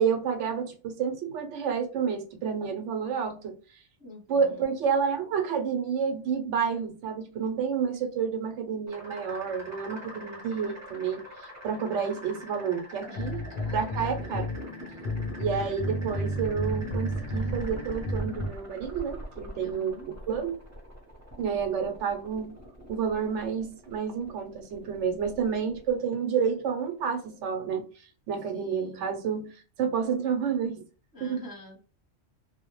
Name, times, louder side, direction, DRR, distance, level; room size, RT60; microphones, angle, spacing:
voice 1, 0.0-3.6 4.3-13.4 13.7-14.5 15.4-20.6 21.4-22.5 22.9-27.8 28.3-29.5 29.8-30.8 31.2-31.4, right 6 dB, 75° right, 0.9 m, -29 dB
voice 2, 4.0-4.8 13.1-14.6 19.5-20.1 28.3-29.1 31.1-31.8, equal, 20° left, 0.8 m, -46 dB
sound 1, 8.9-27.6, equal, 15° right, 0.6 m, -43 dB
sound 2, 13.2-18.5, equal, 80° left, 0.3 m, -32 dB
2.2 x 2.1 x 2.9 m
omnidirectional pair, 1.3 m